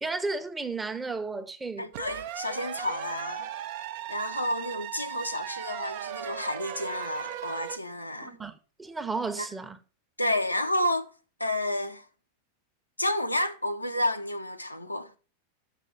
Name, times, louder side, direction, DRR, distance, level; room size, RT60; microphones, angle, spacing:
voice 1, 0.0-1.9 8.2-8.5 8.8-9.8, right 3 dB, 10° right, 0.8 m, -33 dB
voice 2, 1.8-3.5 4.1-8.4 9.4-9.5 10.2-11.1 11.4-12.1 13.0-15.1, left 1 dB, 85° left, 0.7 m, -30 dB
sound 1, 1.9-7.8, right 12 dB, 50° right, 0.6 m, -37 dB
6.6 x 6.1 x 6.5 m
figure-of-eight pair, 90°, 0 cm